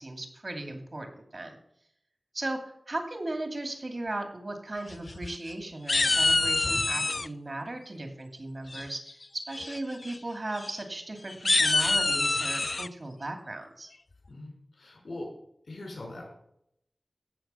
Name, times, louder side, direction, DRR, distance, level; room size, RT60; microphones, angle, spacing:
voice 1, 0.0-1.6 2.3-13.9, right 2 dB, 55° right, 4 dB, 2.5 m, -37 dB
sound 1, 4.9-5.5 5.9-7.3 8.7-9.1 9.5-9.8 10.0-10.2 10.5-10.7 11.3-12.9, left 2 dB, 55° left, 0.3 m, -26 dB
voice 2, 14.3-15.3 15.7-16.3, left 2 dB, 85° left, 0 dB, 4.8 m, -41 dB
16.0 x 7.0 x 5.6 m, 0.75 s
wide cardioid pair, 60°, 0 cm